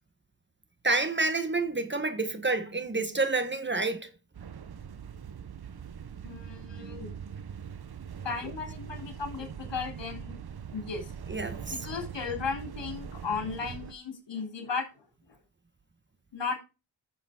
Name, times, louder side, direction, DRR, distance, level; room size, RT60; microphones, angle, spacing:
voice 1, 0.8-4.1 11.3-11.7, right 3 dB, 25° right, 1.4 m, -28 dB
sound 1, 4.3-13.9, right 7 dB, 60° right, 1.1 m, -42 dB
voice 2, 6.2-7.1 8.2-10.4 10.7-11.1 11.7-15.4 16.3-16.6, left 5 dB, 85° left, 3.5 m, -35 dB
11.5 x 7.0 x 5.1 m
wide cardioid pair, 100°, 42 cm